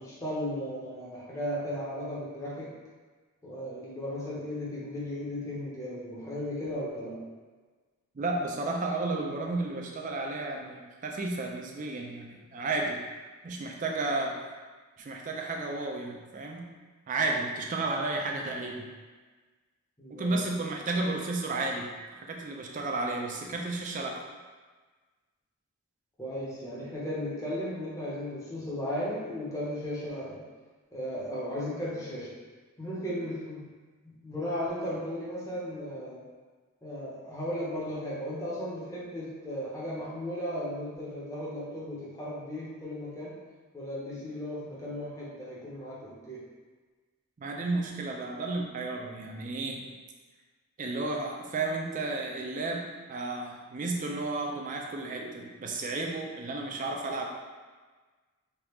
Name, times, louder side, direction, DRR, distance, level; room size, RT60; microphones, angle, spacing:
voice 1, 0.0-2.7 3.4-7.2 20.0-20.4 26.2-30.4 30.9-32.4 32.8-33.7 34.0-36.2 36.8-43.4 43.7-46.4, equal, 15° left, -7 dB, 0.7 m, -36 dB
voice 2, 8.2-13.0 13.4-14.4 15.0-16.7 17.1-18.9 20.1-21.9 22.3-24.2 47.4-49.9 50.8-57.3, right 2 dB, 35° right, 1 dB, 0.4 m, -32 dB
3.3 x 2.4 x 3.0 m, 1.4 s
head